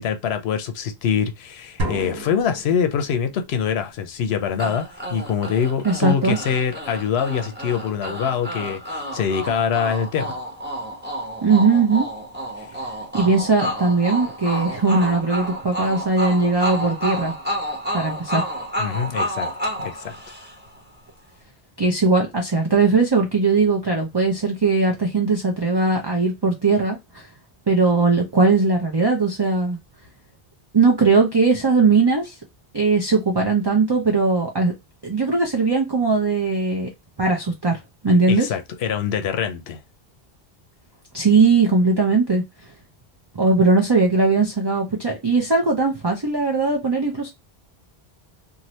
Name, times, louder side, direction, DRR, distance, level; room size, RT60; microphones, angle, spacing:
voice 1, 0.0-4.8 5.1-10.4 12.6-12.7 18.8-19.5 19.8-20.1 38.3-39.8, left 7 dB, 85° left, 0.8 m, -24 dB
sound 1, 1.8-3.5, equal, 70° right, 1.0 m, -31 dB
sound 2, 4.6-20.8, equal, 10° right, 1.1 m, -30 dB
voice 2, 5.8-6.4 11.4-12.1 13.1-17.3 17.9-18.5 21.8-27.2 27.7-29.8 30.7-32.3 32.7-34.7 35.0-36.9 37.2-37.8 38.0-38.5 41.1-42.4 43.3-47.3, right 4 dB, 30° right, 0.6 m, -19 dB
2.7 x 2.6 x 3.0 m
omnidirectional pair, 1.0 m